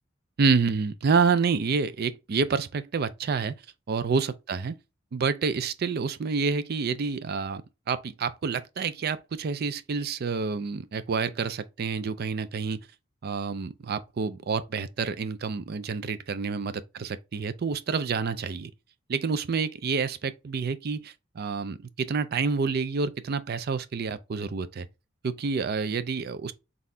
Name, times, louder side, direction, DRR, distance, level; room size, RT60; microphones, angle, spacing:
voice 1, 0.4-3.5 3.9-4.8 5.1-7.6 7.9-12.9 13.2-18.7 19.1-24.9 25.2-26.5, right 5 dB, 55° right, 0.4 m, -28 dB
3.9 x 3.6 x 2.6 m
head